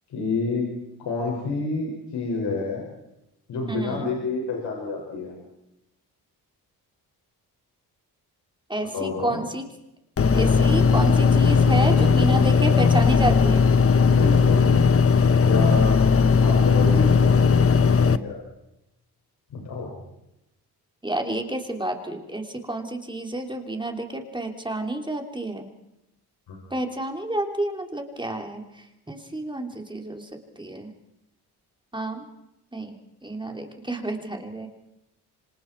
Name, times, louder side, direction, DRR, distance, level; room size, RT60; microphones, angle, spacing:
voice 1, 0.1-0.7 1.0-2.8 3.5-5.3 8.9-9.4 14.1-14.8 15.4-16.0 16.3-18.4 19.5-19.9 26.5-26.6, left 3 dB, 85° left, -1 dB, 6.4 m, -29 dB
voice 2, 3.7-4.1 8.7-9.6 10.3-13.7 21.0-25.7 26.7-28.6 29.1-30.3 30.6-30.9 31.9-32.2 32.7-33.0 33.2-34.7, right 1 dB, 10° right, 3 dB, 3.3 m, -29 dB
sound 1, 10.2-18.2, left 5 dB, 35° left, 1.0 m, -18 dB
27.0 x 26.0 x 4.7 m, 0.88 s
cardioid pair, 85°, 40 cm